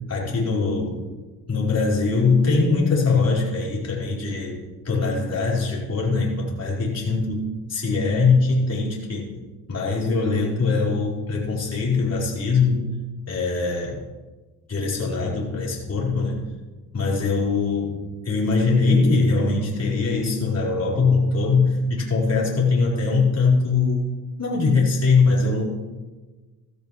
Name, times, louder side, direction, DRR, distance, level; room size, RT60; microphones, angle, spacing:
voice 1, 0.1-1.0 1.5-9.3 9.7-12.9 13.3-14.0 14.7-16.4 16.9-24.0 24.4-25.7, left 4 dB, 35° left, -5 dB, 4.9 m, -22 dB
14.5 x 13.5 x 3.2 m, 1.3 s
supercardioid pair, 85°, 44 cm